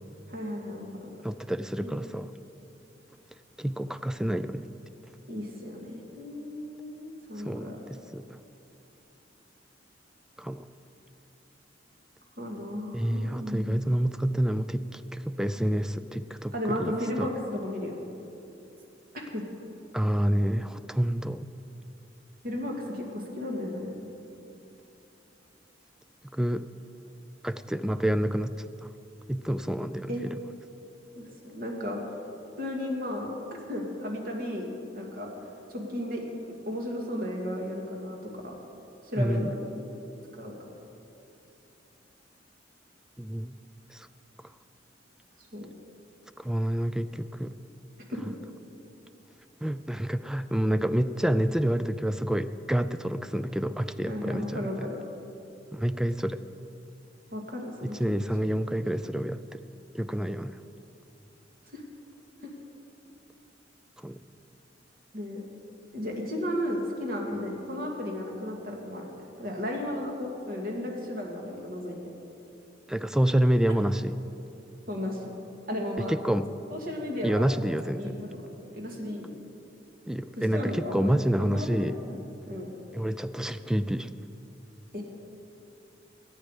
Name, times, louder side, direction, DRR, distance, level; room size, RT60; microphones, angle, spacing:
voice 1, 0.3-1.1 1.8-2.0 5.3-7.8 12.4-13.8 16.5-18.0 19.3-19.4 22.4-24.1 30.1-30.2 31.1-32.0 32.6-33.3 33.7-34.7 34.9-35.3 35.7-36.2 36.7-38.5 39.1-39.7 40.4-40.5 45.5-45.7 48.1-48.2 54.1-55.0 57.3-58.2 61.7-61.8 62.4-62.5 65.1-65.4 65.9-69.1 69.4-71.9 74.9-75.2 75.7-76.1 76.7-77.5 78.0-78.1 78.7-79.3 80.4-81.1 81.4-82.2 82.5-82.7 84.9-85.0, left 1 dB, 50° right, 0 dB, 2.3 m, -34 dB
voice 2, 1.2-2.3 3.6-4.6 7.4-8.4 10.4-10.7 12.9-17.3 19.9-21.5 26.3-26.7 27.4-28.9 29.3-30.4 39.2-39.6 43.2-43.6 43.9-44.1 46.4-47.5 49.6-54.9 55.7-56.4 57.8-59.6 59.9-60.6 64.0-64.2 72.9-74.2 76.1-76.5 77.2-78.2 80.1-81.9 82.9-84.1, right 1 dB, 5° right, 12 dB, 0.3 m, -28 dB
21.5 x 9.3 x 5.0 m, 2.8 s
head